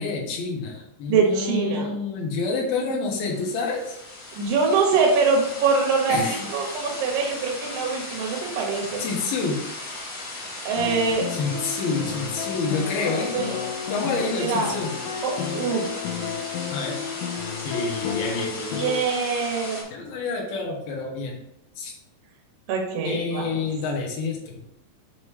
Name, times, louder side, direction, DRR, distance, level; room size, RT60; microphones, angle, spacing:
voice 1, 0.0-4.0 6.1-6.5 9.0-9.6 11.3-13.3 13.9-14.9 16.7-17.0 17.6-18.9 19.9-21.4 21.8-21.9 23.0-24.6, left 4 dB, 70° left, -1 dB, 2.8 m, -28 dB
voice 2, 1.1-1.9 4.3-9.0 10.6-11.3 13.3-13.6 14.4-14.7 15.2-15.8 18.8-19.8 22.7-23.5, right 5 dB, 75° right, -1 dB, 3.4 m, -23 dB
sound 1, 3.2-19.8, left 2 dB, 45° left, 1.5 m, -36 dB
sound 2, 10.8-19.0, left 7 dB, 85° left, 2.8 m, -32 dB
7.2 x 3.1 x 4.9 m, 0.81 s
omnidirectional pair, 4.8 m